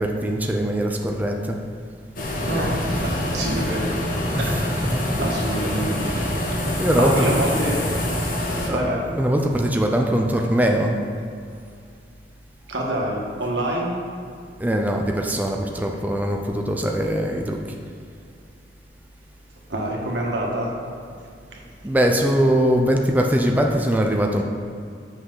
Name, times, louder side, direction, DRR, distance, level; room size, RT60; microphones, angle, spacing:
voice 1, 0.0-1.6 4.3-5.0 6.0-6.5 6.8-7.4 8.6-11.0 14.6-17.6 21.8-24.4, equal, 10° right, 1 dB, 0.5 m, -22 dB
sound 1, 2.2-8.7, left 1 dB, 55° left, 1.4 m, -25 dB
voice 2, 2.5-4.0 4.4-4.5 5.2-6.3 6.7-7.8 8.7-9.0 12.7-13.9 19.7-20.7 21.5-21.6, right 1 dB, 75° right, -2 dB, 1.4 m, -26 dB
7.8 x 6.1 x 3.9 m, 2.3 s
head